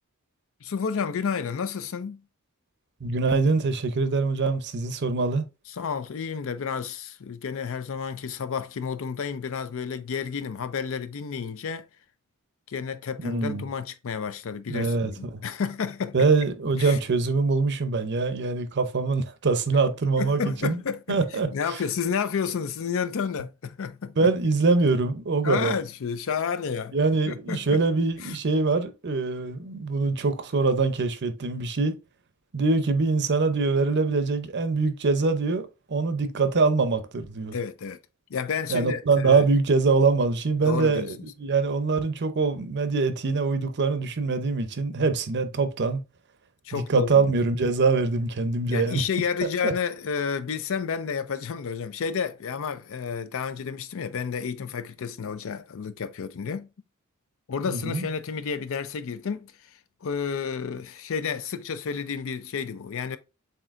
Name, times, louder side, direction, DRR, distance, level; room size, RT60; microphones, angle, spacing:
voice 1, 0.6-2.2 5.7-11.9 12.7-16.3 16.8-17.0 20.2-21.2 21.5-24.3 25.4-27.0 27.3-27.8 28.2-28.4 37.5-38.0 38.3-39.5 40.6-41.1 46.6-47.3 48.7-56.7 57.5-59.5 60.0-63.2, left 6 dB, 65° left, 0.5 m, -31 dB
voice 2, 3.0-5.4 13.2-13.7 14.7-15.4 16.1-20.8 21.1-21.5 24.2-25.7 26.9-31.9 32.5-37.5 38.7-46.0 46.7-49.0 49.6-49.7 57.7-58.1, right 4 dB, 50° right, 0.6 m, -24 dB
7.4 x 2.8 x 2.5 m
head